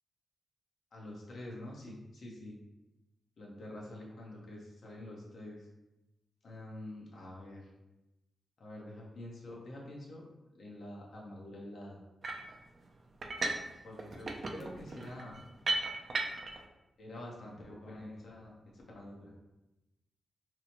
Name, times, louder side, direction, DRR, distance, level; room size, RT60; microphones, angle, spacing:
voice 1, 0.9-2.6 3.4-5.7 6.4-7.7 8.6-10.2 10.5-12.0 13.8-15.4 17.0-19.4, left 1 dB, 70° left, -2 dB, 0.7 m, -47 dB
sound 1, 12.2-12.5 13.2-13.7 14.0-16.6, right 2 dB, 55° right, 0.4 m, -36 dB
2.9 x 2.1 x 2.8 m, 0.98 s
supercardioid pair, 50°, 0 cm